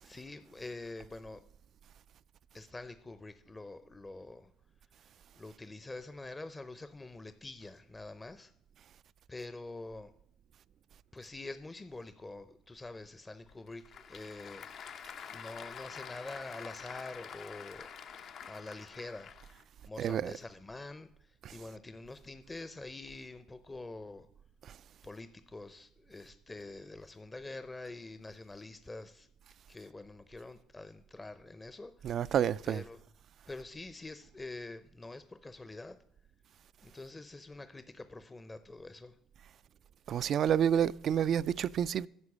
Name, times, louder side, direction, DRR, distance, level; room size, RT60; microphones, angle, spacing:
voice 1, 0.0-1.5 2.5-4.5 5.0-8.5 9.3-10.1 11.1-14.9 15.3-17.9 18.4-19.3 19.8-24.3 25.0-29.3 29.7-32.3 32.6-33.0 33.5-36.0 36.8-39.2, left 2 dB, 20° left, 0.7 m, -46 dB
Applause / Crowd, 13.5-19.6, left 7 dB, 60° left, 0.8 m, -47 dB
voice 2, 20.0-20.3 21.4-21.5 32.0-32.8 40.1-42.1, right 9 dB, 60° right, 0.3 m, -29 dB
9.6 x 6.1 x 7.2 m
hypercardioid pair, 60°, 0 cm